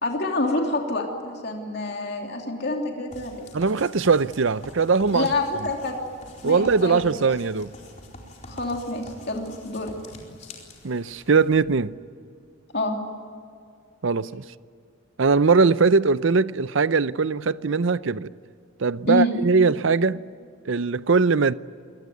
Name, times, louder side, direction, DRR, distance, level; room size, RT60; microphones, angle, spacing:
voice 1, 0.0-3.3 5.1-6.0 6.4-7.0 8.4-9.9 12.7-13.0 19.1-19.3, left 2 dB, 50° left, 3.1 m, -27 dB
sound 1, 3.1-11.5, left 1 dB, 35° left, 4.3 m, -45 dB
voice 2, 3.5-5.3 6.4-7.7 10.8-11.9 14.0-14.4 15.2-18.3 18.8-20.2 20.7-21.5, right 4 dB, 65° right, 0.6 m, -21 dB
26.0 x 20.0 x 9.4 m
head